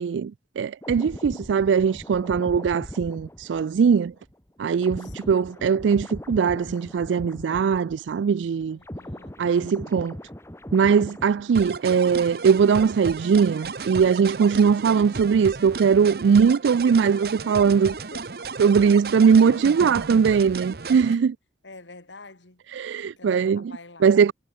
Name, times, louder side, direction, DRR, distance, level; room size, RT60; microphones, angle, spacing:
voice 1, 0.0-4.1 4.6-8.8 9.4-10.1 10.7-17.9 18.6-21.3 22.8-23.6 24.0-24.3, right 6 dB, 85° right, 0.4 m, -20 dB
sound 1, 0.8-8.3 8.6-12.3 12.6-12.8, equal, 15° left, 1.6 m, -40 dB
voice 2, 5.0-5.6 8.7-9.7 14.4-14.6 17.9-18.3 18.6-18.7 19.1-20.1 21.1-21.2 21.6-24.1, left 2 dB, 85° left, 3.4 m, -48 dB
sound 2, 11.5-21.1, right 4 dB, 55° right, 0.8 m, -34 dB
head